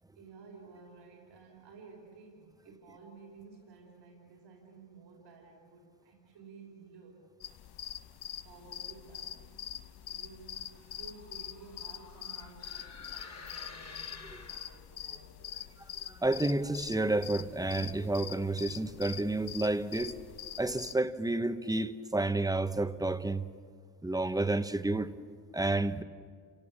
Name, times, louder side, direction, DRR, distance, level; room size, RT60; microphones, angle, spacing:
voice 1, 0.2-7.3 8.4-9.6 10.1-15.6, right 4 dB, 85° right, -1 dB, 5.3 m, -54 dB
sound 1, 7.4-20.9, left 10 dB, 65° left, 0.9 m, -44 dB
sound 2, 10.6-15.1, left 4 dB, 35° left, 2.0 m, -50 dB
voice 2, 16.1-20.2 20.6-23.5 24.0-25.1 25.5-26.0, right 2 dB, 10° right, 10 dB, 1.1 m, -30 dB
29.5 x 17.5 x 7.3 m, 2.2 s
cardioid pair, 80°, 43 cm